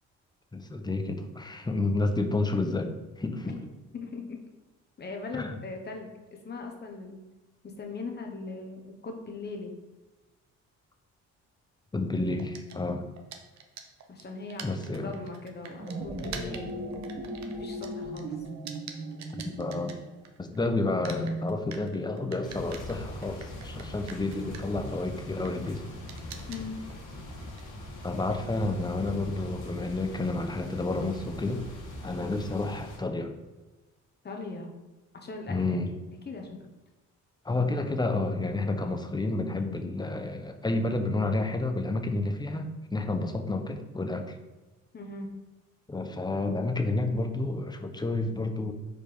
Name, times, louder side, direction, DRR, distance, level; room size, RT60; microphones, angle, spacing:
voice 1, 0.5-2.9 3.2-3.6 5.3-5.6 11.9-13.1 14.6-15.2 19.3-20.0 20.4-25.8 28.0-31.6 32.0-33.3 35.5-35.9 37.4-44.4 45.9-48.7, left 2 dB, 15° left, 6 dB, 0.8 m, -30 dB
voice 2, 3.9-4.4 5.0-6.1 6.4-7.2 7.6-9.7 14.1-17.3 17.6-18.4 26.5-26.8 34.2-34.7 35.2-35.6 36.3-36.7 44.9-45.3, left 3 dB, 35° left, 2 dB, 1.2 m, -39 dB
sound 1, 12.4-20.6 20.8-29.1, right 6 dB, 65° right, 0.9 m, -47 dB
sound 2, 15.6-20.2, right 1 dB, 45° right, 1.7 m, -38 dB
sound 3, 22.4-33.0, left 1 dB, 80° left, 1.7 m, -42 dB
5.0 x 4.4 x 5.2 m, 1.2 s
cardioid pair, 90°, 30 cm